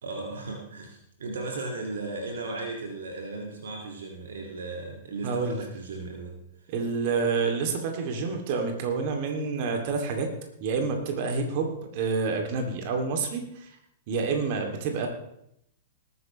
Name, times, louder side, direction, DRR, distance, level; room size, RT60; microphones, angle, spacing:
voice 1, 0.0-6.4, right 3 dB, 70° right, 1 dB, 2.0 m, -36 dB
voice 2, 5.2-5.6 6.7-10.3 10.6-13.8 14.1-15.1, right 4 dB, 50° right, 3 dB, 2.4 m, -28 dB
19.5 x 9.5 x 3.1 m, 0.77 s
figure-of-eight pair, 105°, 0 cm